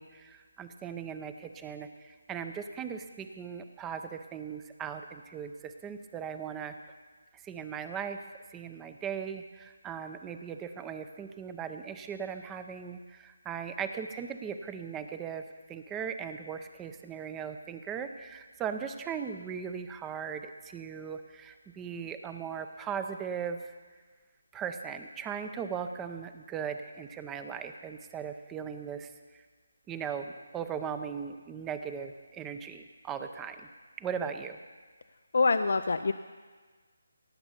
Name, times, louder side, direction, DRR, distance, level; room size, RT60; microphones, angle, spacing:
voice 1, 0.0-6.7 7.4-23.7 24.5-29.4 29.9-33.7 34.0-34.6, right 7 dB, 10° right, 8 dB, 0.6 m, -38 dB
voice 2, 35.3-36.1, left 4 dB, 65° left, 10 dB, 0.5 m, -25 dB
17.5 x 7.1 x 6.9 m, 1.4 s
figure-of-eight pair, 155°, 0 cm